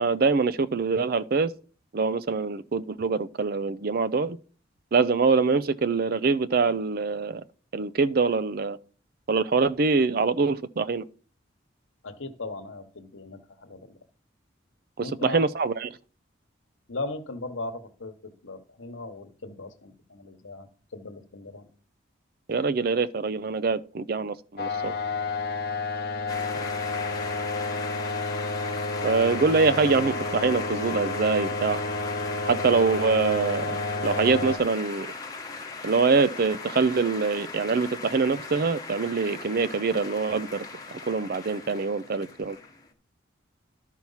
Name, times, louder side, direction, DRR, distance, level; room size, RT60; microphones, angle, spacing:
voice 1, 0.0-1.5 1.9-4.4 4.9-7.4 7.7-8.8 9.3-11.1 15.0-15.9 22.5-24.9 29.0-31.8 32.4-33.8 34.0-35.1 35.8-40.7 40.9-42.6, right 4 dB, 50° right, 0.4 m, -24 dB
voice 2, 12.0-14.0 15.0-15.4 16.9-21.7 26.5-26.6, left 2 dB, 85° left, 1.2 m, -38 dB
sound 1, 24.6-34.6, left 3 dB, 50° left, 0.8 m, -30 dB
sound 2, 26.3-42.9, left 4 dB, 20° left, 1.2 m, -39 dB
12.0 x 4.5 x 5.6 m
head